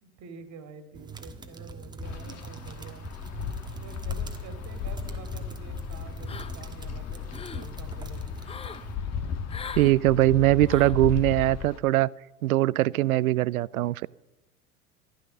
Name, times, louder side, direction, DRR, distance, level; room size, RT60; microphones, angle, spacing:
voice 1, 0.0-3.1 3.8-8.4, right 5 dB, 40° right, 2.5 m, -47 dB
sound 1, 0.9-8.9, right 3 dB, 10° right, 1.4 m, -42 dB
Wind, 2.0-11.8, left 7 dB, 35° left, 1.9 m, -36 dB
sound 2, 6.3-6.8 7.1-7.7 8.4-8.9 9.5-9.9 10.7-11.0, left 6 dB, 15° left, 0.7 m, -40 dB
voice 2, 9.8-12.1 12.4-14.1, right 16 dB, 70° right, 0.6 m, -21 dB
14.5 x 11.5 x 6.7 m
hypercardioid pair, 90°, 44 cm